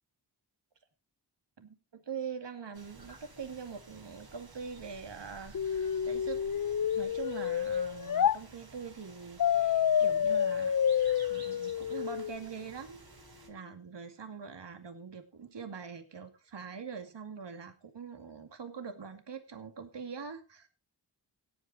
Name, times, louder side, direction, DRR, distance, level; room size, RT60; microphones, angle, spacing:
voice 1, 1.6-6.4 6.9-13.0 13.5-20.7, right 6 dB, 75° right, 7 dB, 2.4 m, -43 dB
sound 1, 2.7-13.5, right 3 dB, 55° right, 4.8 m, -54 dB
sound 2, 5.5-8.4 9.4-12.4, left 8 dB, 50° left, 0.6 m, -29 dB
16.5 x 8.8 x 4.4 m, 0.29 s
wide cardioid pair, 65°, 43 cm